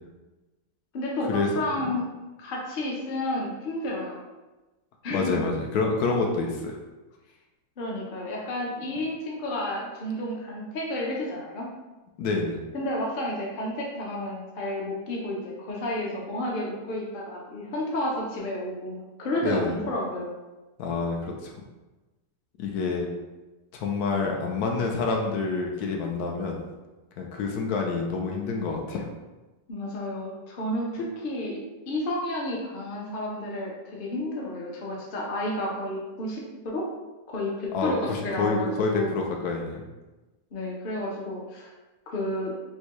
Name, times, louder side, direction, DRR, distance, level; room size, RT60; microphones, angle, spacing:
voice 1, 0.9-2.1 2.4-4.2 5.0-5.4 7.8-11.7 12.7-20.3 29.7-31.6 31.9-36.8 37.3-39.1 40.5-41.7 42.1-42.5, left 1 dB, 50° left, -2 dB, 0.6 m, -31 dB
voice 2, 5.1-6.8 12.2-12.6 19.4-19.7 20.8-21.5 22.6-23.1 23.7-26.6 27.2-29.0 37.7-39.8, left 4 dB, 75° left, 1 dB, 1.0 m, -27 dB
4.3 x 2.2 x 2.9 m, 1.1 s
omnidirectional pair, 1.7 m